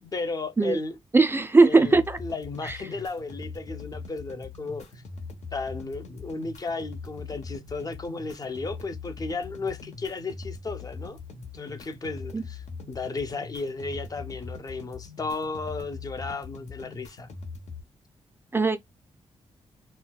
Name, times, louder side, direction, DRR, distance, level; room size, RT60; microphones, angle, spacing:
voice 1, 0.0-1.0 1.6-4.9 5.5-11.2 11.5-17.3, left 3 dB, 30° left, 0.5 m, -34 dB
voice 2, 1.1-2.2 2.6-2.7 12.3-12.4 18.5-18.8, right 3 dB, 20° right, 0.4 m, -19 dB
sound 1, 1.8-17.8, left 4 dB, 80° left, 0.9 m, -41 dB
4.3 x 2.2 x 2.2 m
wide cardioid pair, 120°, 12 cm